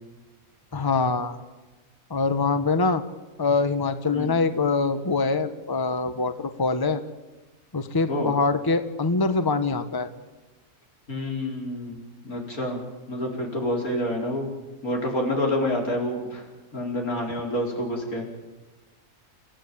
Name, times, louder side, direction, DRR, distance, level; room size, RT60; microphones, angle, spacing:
voice 1, 0.7-1.4 2.1-3.0 3.4-7.0 7.7-10.1, left 3 dB, 15° left, 10 dB, 1.1 m, -24 dB
voice 2, 11.1-12.8 13.1-14.5 14.8-16.4 16.7-18.2, left 1 dB, 85° left, 0 dB, 5.1 m, -28 dB
29.0 x 16.0 x 8.7 m, 1.2 s
omnidirectional pair, 1.5 m